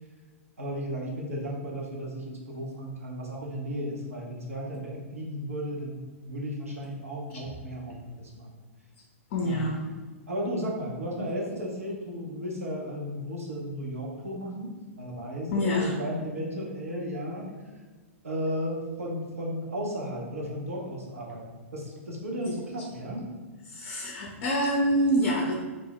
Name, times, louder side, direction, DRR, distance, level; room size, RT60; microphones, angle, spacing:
voice 1, 0.6-8.6 9.4-9.7 10.3-14.7 15.0-17.5 18.2-23.3, equal, 85° right, -2 dB, 0.7 m, -34 dB
voice 2, 9.3-9.9 15.5-16.0 22.5-22.6 23.7-25.5, equal, 50° left, 0 dB, 0.4 m, -26 dB
2.4 x 2.1 x 3.8 m, 1.3 s
hypercardioid pair, 115°, 7 cm